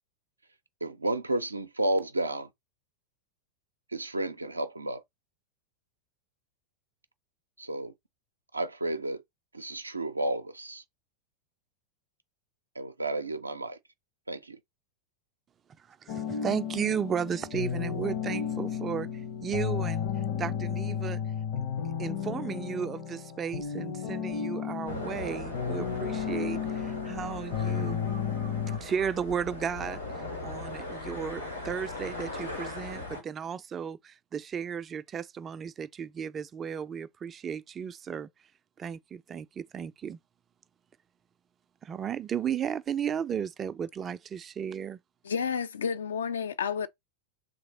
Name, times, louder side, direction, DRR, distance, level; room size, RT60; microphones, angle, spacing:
voice 1, 0.8-2.5 3.9-5.0 7.6-7.9 8.5-9.2 9.5-10.8 12.8-13.8 14.3-14.6, right 1 dB, 80° right, 0.5 m, -31 dB
voice 2, 15.9-19.1 19.4-20.1 20.4-21.2 21.6-21.7 22.0-28.0 28.8-38.3 38.8-40.2 41.8-45.0, right 7 dB, 25° right, 0.3 m, -34 dB
sound 1, 16.1-28.8, left 7 dB, 50° left, 0.8 m, -33 dB
sound 2, 24.9-33.2, left 2 dB, 85° left, 1.6 m, -39 dB
voice 3, 45.2-46.9, left 6 dB, 65° left, 0.4 m, -30 dB
3.1 x 2.7 x 4.1 m
figure-of-eight pair, 90°, 0 cm